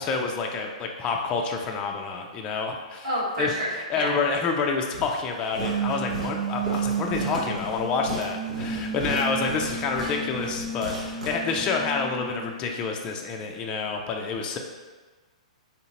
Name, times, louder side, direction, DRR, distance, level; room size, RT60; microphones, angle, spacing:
voice 1, 0.0-3.1 3.4-14.6, left 4 dB, 25° left, 2 dB, 0.4 m, -28 dB
voice 2, 3.0-4.2 10.0-10.2, equal, 70° right, -6 dB, 1.4 m, -29 dB
Walk footsteps, 4.9-11.9, equal, 85° right, 1.1 m, -36 dB
sound 1, 5.6-12.7 12.9-13.0, right 5 dB, 15° right, 0.9 m, -32 dB
3.5 x 2.7 x 2.8 m, 1.3 s
hypercardioid pair, 125°, 4 cm